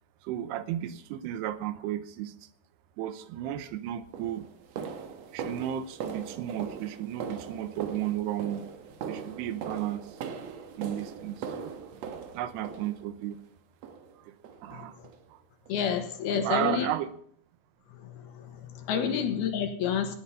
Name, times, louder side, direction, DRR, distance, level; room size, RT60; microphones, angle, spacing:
voice 1, 0.2-2.4 3.0-4.5 5.3-8.6 9.1-10.2 10.8-11.8 12.3-13.4 14.2-14.4 14.6-15.0 15.3-15.4 16.3-17.1 19.0-19.2, right 12 dB, 85° right, 13 dB, 3.0 m, -33 dB
sound 1, 3.4-3.6 4.1-13.3 13.8-14.2 14.4-14.7 15.0-15.2 15.7-15.8 16.3-16.4, right 6 dB, 70° right, 1.6 m, -40 dB
voice 2, 15.7-16.9 18.0-20.2, left 8 dB, 75° left, 6 dB, 3.3 m, -29 dB
17.5 x 9.1 x 5.5 m, 0.62 s
omnidirectional pair, 4.7 m